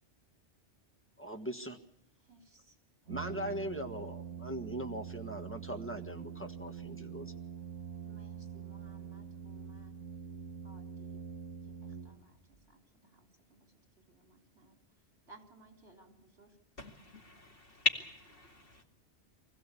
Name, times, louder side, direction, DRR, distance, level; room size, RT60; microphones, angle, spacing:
voice 1, 1.2-1.8 3.1-7.3, right 1 dB, 10° left, 4 dB, 1.5 m, -40 dB
voice 2, 2.2-2.8 8.0-10.0 10.6-11.2 11.6-13.7 14.0-14.8 15.3-16.6, right 3 dB, 65° right, 3 dB, 3.9 m, -61 dB
Brass instrument, 3.1-12.6, right 8 dB, 85° right, 1.8 m, -45 dB
voice 3, 16.8-18.8, left 3 dB, 55° left, 2 dB, 2.7 m, -37 dB
25.0 x 15.5 x 8.4 m, 0.84 s
omnidirectional pair, 1.2 m